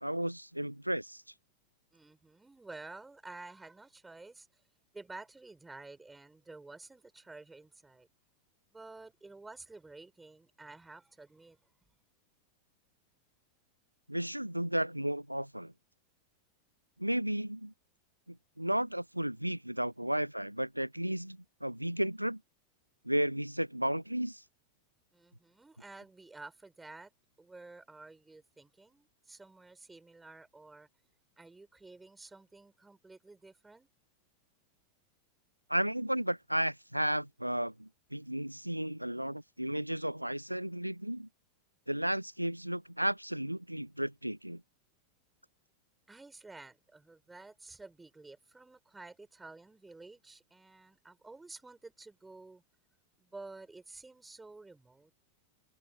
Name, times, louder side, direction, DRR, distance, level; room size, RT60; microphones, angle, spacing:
voice 1, 0.0-1.2 14.1-15.7 17.0-17.7 18.3-22.4 23.1-24.4 35.7-41.3 41.9-44.6, right 1 dB, 90° right, 0.5 m, -33 dB
voice 2, 1.9-4.5 4.9-8.1 8.7-11.6 25.1-27.1 27.4-30.9 31.4-33.9 46.1-52.6 53.2-55.1, right 3 dB, 10° right, 6.3 m, -51 dB
figure-of-eight pair, 90°, 0 cm